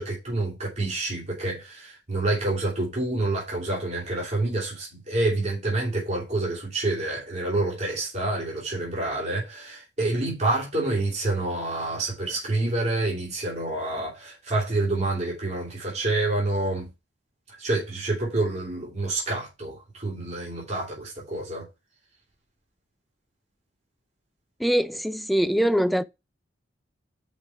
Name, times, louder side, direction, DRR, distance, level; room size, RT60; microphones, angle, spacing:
voice 1, 0.0-16.9 17.6-21.7, right 2 dB, 40° right, 2.9 m, -28 dB
voice 2, 24.6-26.0, equal, ahead, 0.4 m, -23 dB
5.4 x 5.4 x 5.6 m
head